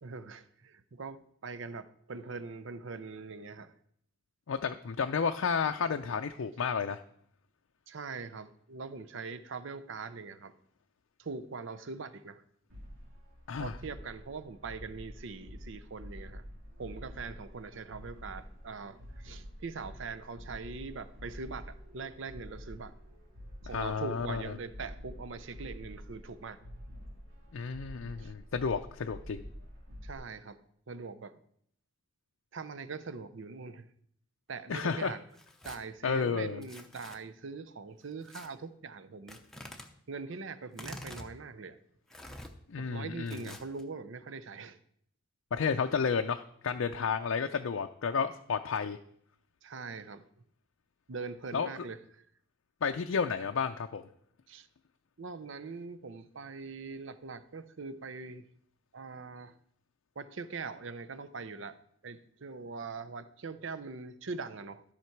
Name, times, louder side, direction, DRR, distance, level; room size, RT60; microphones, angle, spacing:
voice 1, 0.0-3.7 7.9-10.5 11.2-12.4 13.6-16.4 16.8-22.9 23.6-26.6 28.2-28.3 30.0-30.6 30.9-31.3 32.5-33.9 34.5-35.2 35.6-39.4 40.1-41.8 42.8-44.8 49.6-50.2 51.1-52.2 54.5-54.7 55.2-58.5 58.9-59.6 60.2-61.8 62.0-64.8, right 4 dB, 65° right, 13 dB, 0.6 m, -42 dB
voice 2, 4.5-7.0 13.5-13.8 23.7-24.5 27.5-29.4 34.7-35.1 36.0-36.6 42.7-43.5 45.5-49.0 51.5-51.8 52.8-54.0, left 5 dB, 75° left, 5 dB, 0.5 m, -32 dB
sound 1, 12.7-30.1, equal, 80° right, 2.2 m, -48 dB
Tearing, 35.3-35.8 36.6-37.2 38.2-38.5 39.3-39.9 40.7-41.3 42.1-42.5 43.3-43.8, left 1 dB, ahead, 0.7 m, -47 dB
13.0 x 5.8 x 4.6 m, 0.68 s
head